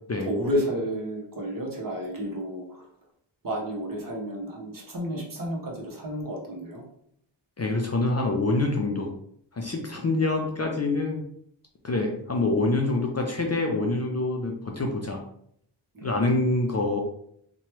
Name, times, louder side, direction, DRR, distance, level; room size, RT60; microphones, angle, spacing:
voice 1, 0.2-2.8 3.4-6.8 15.9-16.5, equal, 45° right, -1 dB, 0.9 m, -31 dB
voice 2, 7.6-9.1 9.5-11.3 11.8-15.2 16.0-17.0, left 2 dB, 35° left, 1 dB, 0.4 m, -26 dB
2.9 x 2.2 x 3.0 m, 0.69 s
wide cardioid pair, 70°, 48 cm